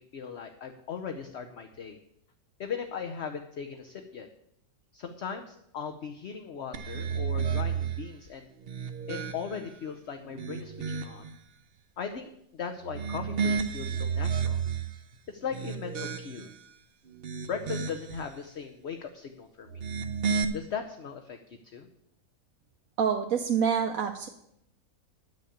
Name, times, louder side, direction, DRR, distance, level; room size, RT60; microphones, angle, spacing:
voice 1, 0.1-2.0 2.6-4.3 4.9-8.5 9.1-11.3 12.0-14.6 15.3-16.5 17.5-19.8 20.5-21.9, left 6 dB, 50° left, 6 dB, 1.0 m, -38 dB
sound 1, 6.7-8.0 8.6-9.7 10.2-11.3 12.8-14.9 15.4-16.6 17.1-18.2 19.7-20.4, right 6 dB, 50° right, 0.9 m, -32 dB
voice 2, 23.0-24.3, right 7 dB, 70° right, 3 dB, 1.2 m, -27 dB
10.0 x 6.6 x 8.5 m, 0.77 s
omnidirectional pair, 1.6 m